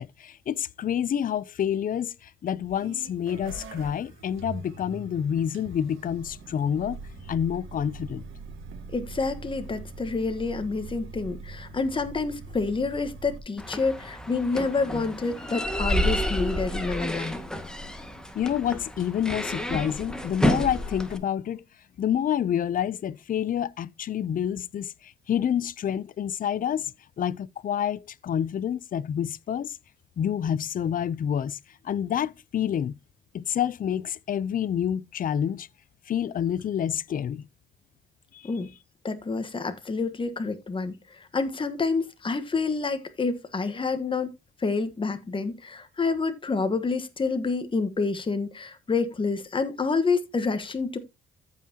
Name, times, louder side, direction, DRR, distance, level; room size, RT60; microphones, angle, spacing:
voice 1, 0.0-7.0 7.3-8.2 18.3-21.6 22.0-26.9 27.2-29.8 30.2-31.6 31.8-33.0 33.3-35.7 36.1-37.4 38.3-38.5, left 9 dB, 45° left, 0.5 m, -28 dB
sound 1, 2.5-13.4, right 3 dB, 90° right, 2.2 m, -42 dB
voice 2, 8.9-17.4 38.4-38.7 39.0-44.3 44.6-51.0, left 4 dB, 25° left, 1.3 m, -28 dB
sound 2, 13.6-21.2, equal, 5° left, 1.7 m, -30 dB
14.0 x 5.6 x 2.8 m
cardioid pair, 90°, 20 cm